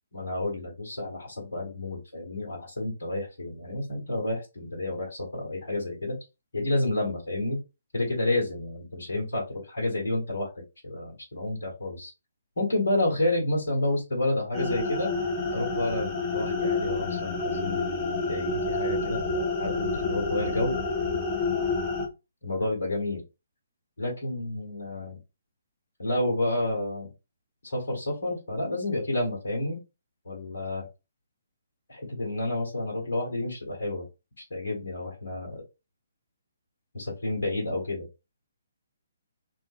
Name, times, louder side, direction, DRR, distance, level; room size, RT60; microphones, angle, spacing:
voice 1, 0.1-6.1 6.5-7.6 7.9-10.5 10.8-12.1 12.6-15.1 15.5-20.8 22.4-23.2 24.0-25.2 26.0-27.1 27.6-29.8 30.2-30.9 31.9-34.0 34.5-35.6 36.9-38.1, left 1 dB, 60° left, -2 dB, 1.3 m, -30 dB
sound 1, 14.5-22.1, left 3 dB, 10° left, 0.8 m, -29 dB
2.5 x 2.4 x 2.5 m, 0.27 s
figure-of-eight pair, 135°, 0 cm